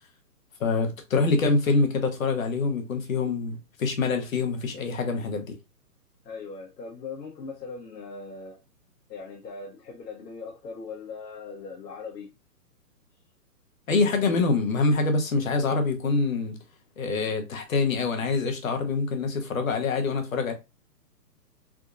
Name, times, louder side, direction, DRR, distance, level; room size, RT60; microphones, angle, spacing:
voice 1, 0.6-5.6 13.9-16.6 17.0-20.5, left 3 dB, 55° left, 0.9 m, -25 dB
voice 2, 6.2-8.6 9.1-12.3, left 4 dB, 90° left, 1.1 m, -40 dB
3.6 x 2.6 x 2.4 m
hypercardioid pair, 165°, 48 cm